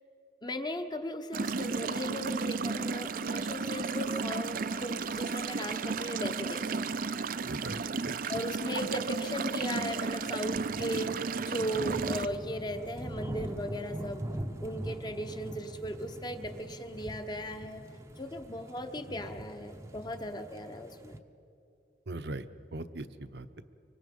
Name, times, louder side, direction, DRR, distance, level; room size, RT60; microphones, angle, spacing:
voice 1, 0.4-7.0 8.3-14.2 14.6-17.9 18.2-21.2, equal, 25° left, 7 dB, 1.1 m, -37 dB
sound 1, 1.3-12.3, right 4 dB, 50° right, 0.5 m, -33 dB
sound 2, 6.9-21.2, right 1 dB, 15° right, 0.7 m, -43 dB
voice 2, 7.4-8.1 22.1-22.4 22.7-23.6, right 2 dB, 70° right, 11 dB, 0.8 m, -39 dB
25.0 x 24.0 x 5.4 m, 2.6 s
head